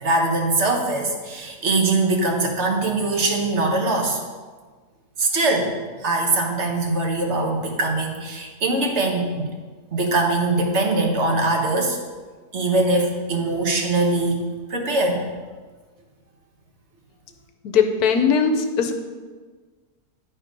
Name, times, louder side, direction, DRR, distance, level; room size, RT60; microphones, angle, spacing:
voice 1, 0.0-4.2 5.2-5.7 6.0-9.5 9.9-12.0 12.5-14.4 14.7-15.3, right 2 dB, 45° right, 1 dB, 1.3 m, -22 dB
voice 2, 17.7-18.9, left 6 dB, 70° left, 6 dB, 1.1 m, -19 dB
9.7 x 4.4 x 5.1 m, 1.4 s
omnidirectional pair, 1.7 m